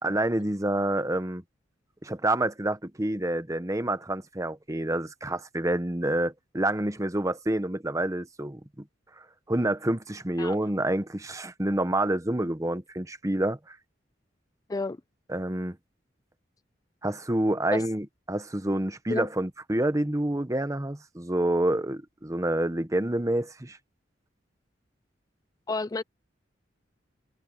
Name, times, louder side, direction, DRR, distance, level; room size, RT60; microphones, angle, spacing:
voice 1, 0.0-1.4 2.0-8.6 9.5-13.8 15.3-15.8 17.0-23.8, right 1 dB, 15° right, 1.1 m, -28 dB
voice 2, 25.7-26.0, left 3 dB, 20° left, 0.3 m, -30 dB
head